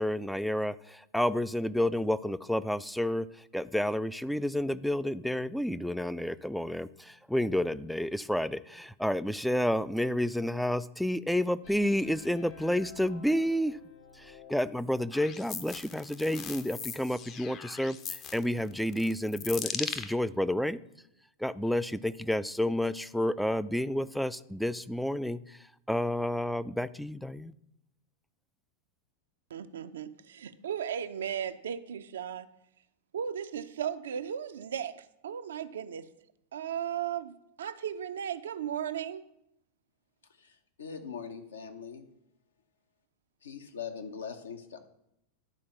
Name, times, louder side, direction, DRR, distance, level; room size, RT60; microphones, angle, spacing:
voice 1, 0.0-3.3 3.5-13.8 14.2-20.8 21.4-25.6 25.9-27.5, left 1 dB, ahead, 15 dB, 0.3 m, -30 dB
sound 1, 11.6-15.4, left 5 dB, 50° left, 1.9 m, -53 dB
sound 2, 15.1-20.1, left 7 dB, 35° left, 0.7 m, -39 dB
voice 2, 29.5-32.5 33.1-36.1 36.5-39.2, right 9 dB, 65° right, 10 dB, 0.5 m, -36 dB
voice 3, 40.4-42.0 43.4-44.9, left 6 dB, 70° left, 6 dB, 1.0 m, -42 dB
10.5 x 4.5 x 7.1 m, 0.82 s
figure-of-eight pair, 90°, 0 cm